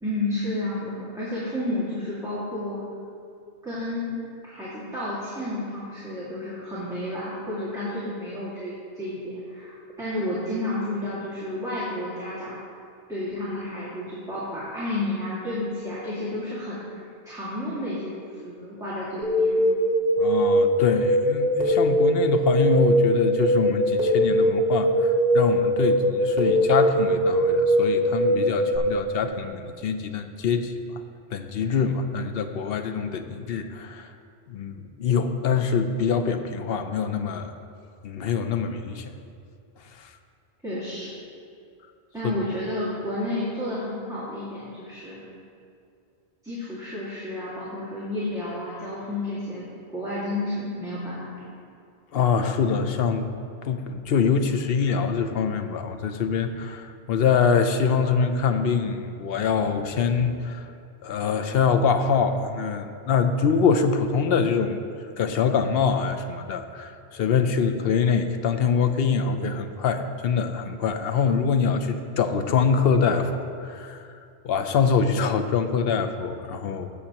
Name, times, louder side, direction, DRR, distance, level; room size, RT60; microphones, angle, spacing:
voice 1, 0.0-2.8 3.6-4.2 4.4-12.7 13.1-19.6 40.6-41.1 42.1-45.2 46.4-51.3, left 1 dB, 5° right, -11 dB, 1.9 m, -31 dB
sound 1, 19.2-28.8, equal, 40° right, 2.0 m, -21 dB
voice 2, 20.2-30.7 31.3-34.1 34.5-37.5 38.0-39.1 40.0-40.1 52.1-53.3 53.6-60.6 61.0-64.8 65.2-74.0 74.4-76.9, left 6 dB, 70° left, 7 dB, 0.8 m, -24 dB
15.0 x 7.6 x 2.9 m, 2.4 s
omnidirectional pair, 1.1 m